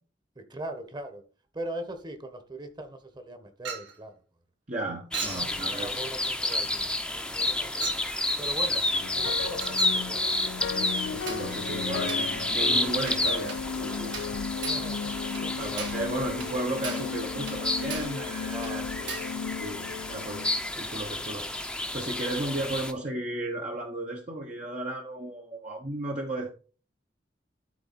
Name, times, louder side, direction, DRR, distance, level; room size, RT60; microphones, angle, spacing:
voice 1, 0.3-1.2 1.5-4.1 5.2-8.0 8.4-11.3 14.6-15.8 18.4-19.3, right 1 dB, 25° right, 1.4 m, -41 dB
Chink clink, 3.7-4.0 5.1-5.5 6.5-6.7 7.8-8.1 9.6-10.0 11.3-11.5 12.1-12.3 13.1-13.2 13.5-13.7 14.1-14.4 14.6-14.9 15.4-15.5 15.8-16.1 16.4-16.5 16.8-17.1 17.5-17.6 17.9-18.2 18.6-18.8 19.1-19.4, right 6 dB, 75° right, 3.5 m, -37 dB
voice 2, 4.7-6.0 8.7-8.8 11.1-14.1 15.6-18.8 19.6-19.8 20.1-21.5 21.9-26.5, right 1 dB, 40° right, 1.2 m, -34 dB
sound 1, 5.1-22.9, left 2 dB, 5° left, 0.9 m, -31 dB
sound 2, 8.9-21.2, left 6 dB, 65° left, 0.4 m, -35 dB
12.5 x 4.2 x 4.3 m
head